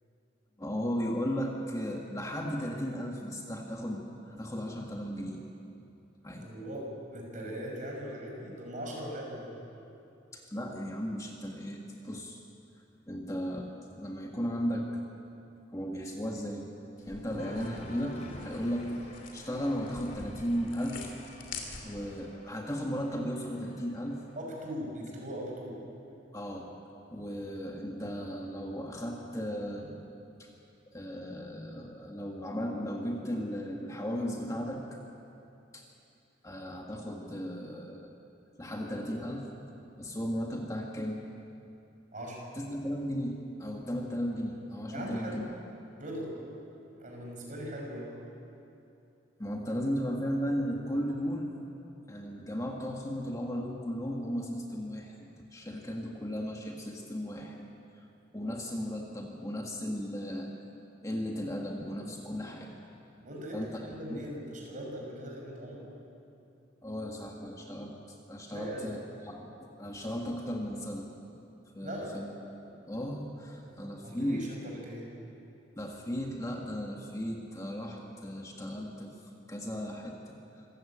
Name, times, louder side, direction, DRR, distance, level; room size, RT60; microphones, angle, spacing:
voice 1, 0.6-5.4 6.2-6.5 10.3-12.4 13.1-13.7 14.0-14.9 15.7-16.6 17.1-21.1 21.8-24.2 26.3-26.7 27.1-30.0 30.4-30.5 30.9-35.0 35.7-35.9 36.4-38.2 38.6-39.5 40.0-41.2 42.6-45.4 49.4-51.5 52.1-57.7 58.3-60.5 61.0-62.7 63.5-63.8 64.1-64.2 66.8-69.5 69.8-71.1 71.7-72.3 72.9-74.4 75.8-79.1 79.5-80.7, equal, 20° left, 0 dB, 1.7 m, -35 dB
voice 2, 6.3-9.6 17.3-17.5 24.4-25.8 42.1-42.5 44.9-45.4 46.0-46.3 46.9-48.2 63.2-65.9 68.5-68.9 71.8-72.2 73.7-73.8 74.0-75.1, equal, 45° right, -1 dB, 6.2 m, -40 dB
sound 1, 17.0-22.2, left 4 dB, 85° left, 3.1 m, -47 dB
Cheering, 17.4-24.4, equal, 40° left, 3.7 m, -50 dB
26.0 x 15.5 x 8.8 m, 2.8 s
head